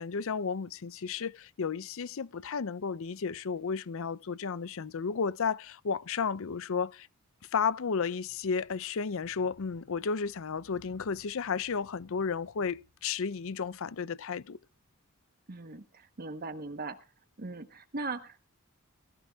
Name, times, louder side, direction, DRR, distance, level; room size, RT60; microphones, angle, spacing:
voice 1, 0.0-7.1 7.5-14.6, left 5 dB, 65° left, 0.6 m, -33 dB
voice 2, 15.5-17.0 17.4-18.4, right 3 dB, 45° right, 1.2 m, -39 dB
21.0 x 14.5 x 2.4 m
head